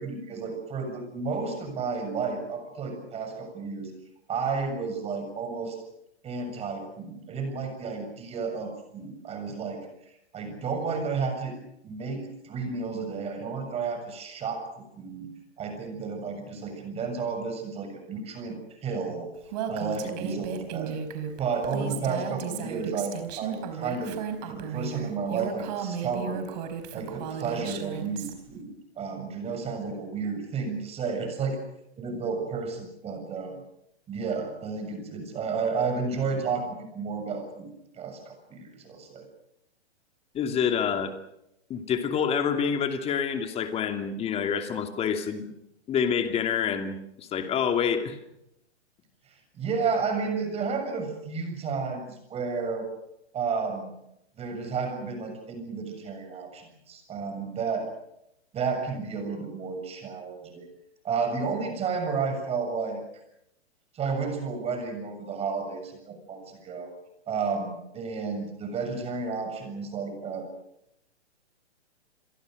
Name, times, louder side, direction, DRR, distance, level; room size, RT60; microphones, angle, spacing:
voice 1, 0.0-3.9 4.3-5.8 6.2-11.6 11.8-15.3 15.6-19.3 19.7-21.0 21.4-24.2 24.5-26.5 26.9-28.7 29.0-31.6 32.0-33.5 34.1-37.7 37.9-39.3 49.3-52.9 53.3-53.9 54.4-57.9 58.5-60.7 61.0-63.0 63.9-66.9 67.3-70.5, right 5 dB, 15° right, 5 dB, 7.1 m, -32 dB
Female speech woman speaking, 19.5-28.3, right 8 dB, 40° right, 4.2 m, -34 dB
voice 2, 40.3-41.1 41.7-45.5 45.9-48.2, left 7 dB, 15° left, 6 dB, 2.7 m, -27 dB
28.0 x 23.0 x 6.6 m, 0.81 s
hypercardioid pair, 140°, 34 cm